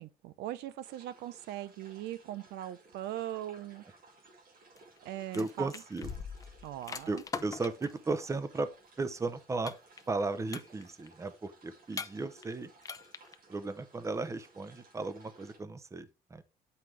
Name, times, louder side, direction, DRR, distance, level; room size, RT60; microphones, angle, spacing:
voice 1, 0.0-3.8 5.0-5.7 6.6-7.2, right 13 dB, 80° right, 0.6 m, -40 dB
sound 1, 0.8-15.6, right 3 dB, 55° right, 2.1 m, -59 dB
sound 2, 4.8-8.0 9.7-10.2 10.5-11.1 11.9-12.5 12.8-13.3, left 5 dB, 20° left, 0.5 m, -42 dB
voice 2, 5.3-6.1 7.1-8.7 9.0-9.7 10.1-12.7 13.5-16.4, right 3 dB, 15° right, 0.7 m, -35 dB
Bass drum, 6.0-7.5, left 6 dB, 65° left, 1.1 m, -45 dB
7.8 x 5.6 x 3.2 m
cardioid pair, 110°, 17 cm